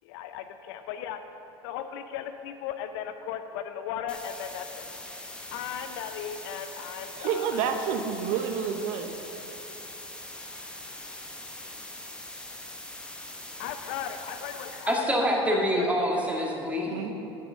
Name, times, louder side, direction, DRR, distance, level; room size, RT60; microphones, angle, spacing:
voice 1, 0.0-1.2 1.6-4.9 5.5-7.7 13.6-15.2 15.5-15.9 16.4-16.5, left 9 dB, 65° left, 9 dB, 0.6 m, -37 dB
sound 1, 4.1-15.0, left 1 dB, 5° left, 1.1 m, -42 dB
voice 2, 7.2-9.1 16.9-17.1, right 7 dB, 60° right, 6 dB, 0.8 m, -29 dB
voice 3, 14.7-17.0, equal, 10° right, -1 dB, 1.9 m, -26 dB
9.4 x 6.1 x 6.2 m, 3.0 s
hypercardioid pair, 75°, 14 cm